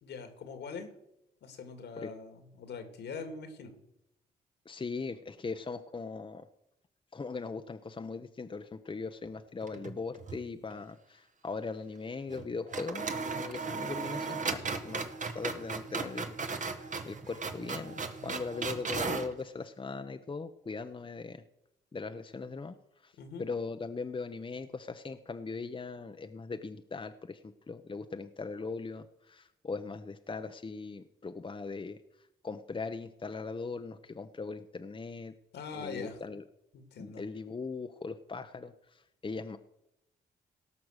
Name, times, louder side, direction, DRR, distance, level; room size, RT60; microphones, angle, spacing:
voice 1, 0.0-0.9 1.4-3.8 23.2-23.5 35.5-36.2 36.7-37.2, left 5 dB, 75° left, 7 dB, 2.3 m, -42 dB
voice 2, 4.6-6.5 7.1-13.1 13.4-21.4 21.9-22.8 23.0-23.1 23.4-32.0 32.4-35.3 35.7-36.4 37.0-39.6, left 4 dB, 30° left, 8 dB, 0.9 m, -40 dB
sound 1, 9.6-10.4 10.7-10.8 12.3-12.5 12.7-19.3, right 4 dB, 45° right, 1.5 m, -36 dB
17.5 x 5.9 x 6.5 m, 0.84 s
supercardioid pair, 55°, 18 cm